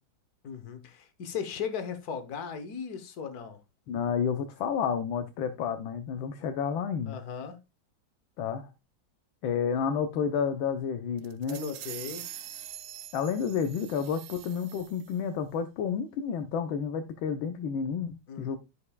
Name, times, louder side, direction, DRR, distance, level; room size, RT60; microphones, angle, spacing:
voice 1, 0.4-3.6 7.1-7.6 11.5-12.3 18.3-18.6, left 6 dB, 55° left, 1.5 m, -37 dB
voice 2, 3.9-7.2 8.4-8.7 9.4-11.6 13.1-18.6, left 7 dB, 80° left, 1.6 m, -30 dB
sound 1, 11.2-15.2, right 12 dB, 80° right, 1.5 m, -44 dB
14.0 x 5.3 x 2.3 m
omnidirectional pair, 2.2 m